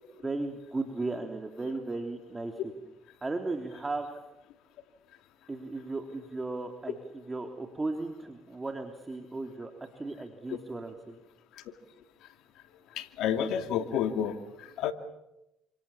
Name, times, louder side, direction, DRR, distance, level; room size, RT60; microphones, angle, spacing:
voice 1, 0.2-2.7 3.2-4.1 5.5-9.7 10.0-11.2, right 3 dB, 20° right, 4 dB, 3.2 m, -36 dB
voice 2, 13.0-14.9, left 8 dB, 75° left, 7 dB, 2.5 m, -30 dB
28.5 x 27.0 x 7.2 m, 0.90 s
supercardioid pair, 75°, 0 cm